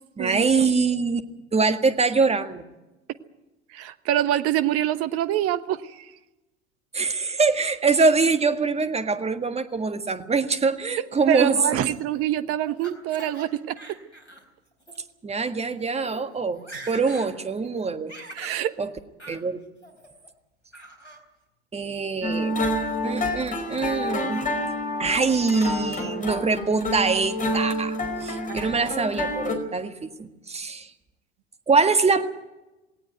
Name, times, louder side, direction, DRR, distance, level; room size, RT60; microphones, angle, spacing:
voice 1, 0.2-1.2 1.5-2.6 6.9-11.9 15.2-18.1 18.4-18.9 19.3-19.6 21.7-22.6 23.0-24.4 25.0-30.9 31.7-32.3, right 4 dB, 20° right, 8 dB, 1.7 m, -24 dB
voice 2, 3.7-6.1 11.0-14.0 18.3-18.7 28.5-28.9, right 12 dB, 40° right, 13 dB, 1.2 m, -26 dB
Laughter, 11.9-13.5 13.8-14.4 14.8-15.0 15.6-15.7 16.0-16.2 16.5-17.3 17.6-18.6 19.2-19.4 19.8-20.3 20.7-21.2, right 2 dB, 90° left, 4.1 m, -43 dB
sound 1, 22.2-29.6, left 1 dB, 25° left, 4.8 m, -28 dB
18.5 x 18.5 x 9.2 m, 1.0 s
figure-of-eight pair, 70°, 34 cm